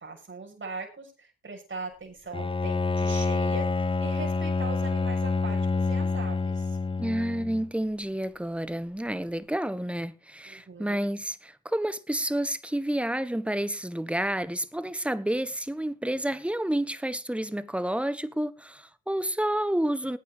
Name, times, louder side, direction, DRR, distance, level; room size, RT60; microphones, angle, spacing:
voice 1, 0.0-6.8 10.5-11.0, right 4 dB, 35° right, 6.7 m, -40 dB
Bowed string instrument, 2.3-7.7, left 4 dB, 15° left, 0.6 m, -27 dB
voice 2, 7.0-20.2, right 1 dB, 5° right, 1.2 m, -30 dB
20.0 x 9.1 x 3.2 m
supercardioid pair, 50°, 33 cm